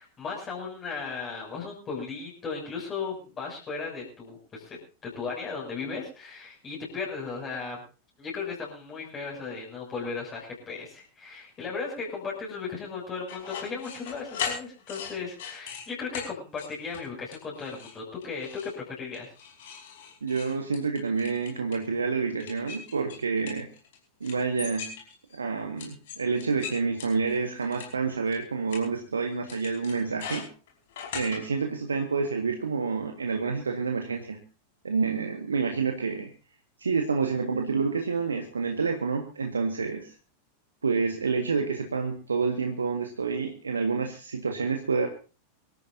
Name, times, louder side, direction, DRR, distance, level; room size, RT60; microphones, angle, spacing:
voice 1, 0.0-7.8 8.2-19.3, left 5 dB, 25° left, -3 dB, 7.2 m, -36 dB
sound 1, 13.3-15.8 16.1-16.3 16.6-17.0 17.3-17.9 18.2-18.7 19.1-21.9 22.4-24.0 24.2-25.3 25.8-27.9 28.3-28.4 28.7-28.8 29.5-31.4, left 7 dB, 55° left, 5.2 m, -38 dB
voice 2, 20.2-23.7 24.2-24.9 25.3-30.5 31.1-34.4 34.8-36.3 36.8-40.1 40.8-45.1, right 4 dB, 75° right, 4 dB, 1.7 m, -28 dB
25.0 x 13.5 x 2.8 m, 0.33 s
figure-of-eight pair, 90°, 0 cm